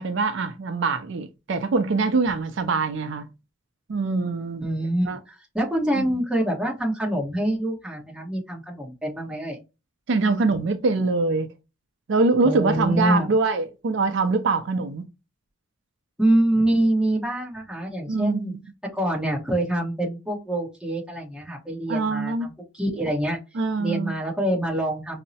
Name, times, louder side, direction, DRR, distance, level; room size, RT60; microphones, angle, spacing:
voice 1, 0.0-3.3 3.9-4.6 5.1-5.2 6.0-6.1 10.1-11.5 12.1-15.0 18.1-18.6 21.9-22.5 23.6-24.1, right 3 dB, 65° right, 0.4 m, -23 dB
voice 2, 4.6-9.6 12.4-13.3 16.2-18.6 18.9-23.4 23.8-25.2, right 1 dB, 5° right, 1.0 m, -25 dB
5.4 x 2.0 x 2.7 m
head